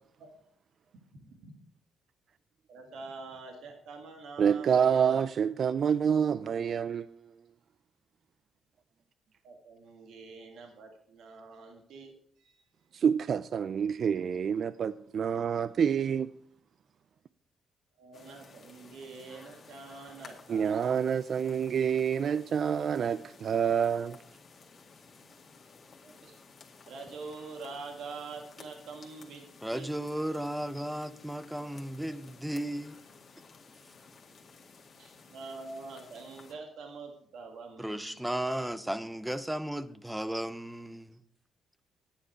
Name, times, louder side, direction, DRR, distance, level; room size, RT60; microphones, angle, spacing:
voice 1, 1.1-1.5 2.7-5.3 9.4-12.7 17.9-20.9 26.0-26.4 26.9-29.9 35.0-38.2, right 4 dB, 75° right, 1.8 m, -46 dB
voice 2, 4.4-7.1 12.9-16.3 20.5-24.2, right 7 dB, 55° right, 0.3 m, -27 dB
sound 1, 18.1-36.5, left 4 dB, 45° left, 2.0 m, -55 dB
voice 3, 29.6-33.0 37.8-41.2, right 1 dB, 5° right, 0.7 m, -35 dB
9.8 x 9.7 x 4.6 m
cardioid pair, 90°, 0 cm